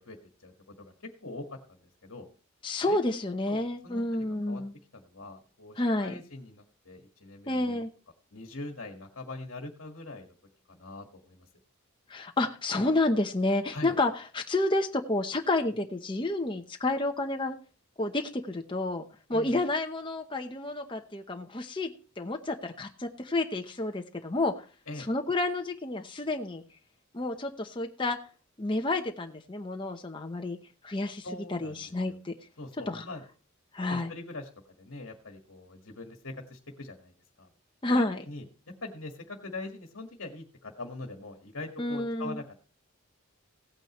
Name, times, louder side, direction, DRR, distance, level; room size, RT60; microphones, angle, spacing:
voice 1, 0.0-2.3 2.9-3.2 3.5-4.6 4.9-7.9 8.3-10.3 10.7-11.5 13.7-13.9 19.3-19.6 24.9-25.1 31.2-32.2 32.6-33.2 33.9-34.5 34.8-37.5 37.9-38.4 38.8-42.6, left 2 dB, 60° left, 3 dB, 1.6 m, -43 dB
voice 2, 2.6-4.7 5.8-6.1 7.5-7.9 12.1-17.6 18.0-19.0 19.3-24.6 25.1-26.6 27.1-28.2 28.6-30.6 30.8-32.3 32.9-33.0 33.7-34.1 37.8-38.2 41.8-42.4, left 2 dB, 20° left, 3 dB, 0.8 m, -30 dB
16.5 x 9.0 x 3.1 m, 0.37 s
head